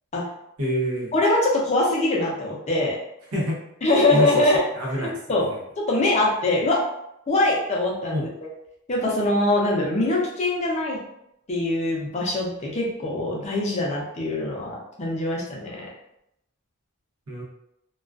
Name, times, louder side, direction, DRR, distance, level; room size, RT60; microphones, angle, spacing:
voice 1, 0.6-1.1 3.3-3.6 4.1-4.4 4.7-5.1 5.4-5.6 8.1-8.3 17.3-17.4, equal, 75° right, -3 dB, 0.8 m, -26 dB
voice 2, 1.1-3.0 3.8-4.6 5.0-5.5 5.9-6.8 7.3-8.3 8.9-11.0 11.5-15.9, left 2 dB, 30° left, -2 dB, 0.5 m, -23 dB
2.3 x 2.3 x 2.4 m, 0.80 s
head